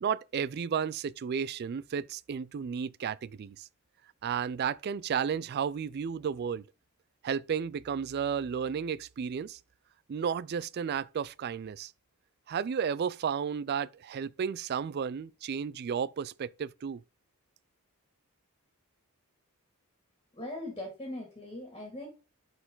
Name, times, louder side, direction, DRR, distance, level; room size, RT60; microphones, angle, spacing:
voice 1, 0.0-3.7 4.2-6.6 7.2-9.6 10.1-11.9 12.5-17.0, right 7 dB, 45° right, 0.3 m, -33 dB
voice 2, 20.3-22.1, left 1 dB, 20° left, 2.3 m, -40 dB
11.0 x 4.4 x 3.8 m
head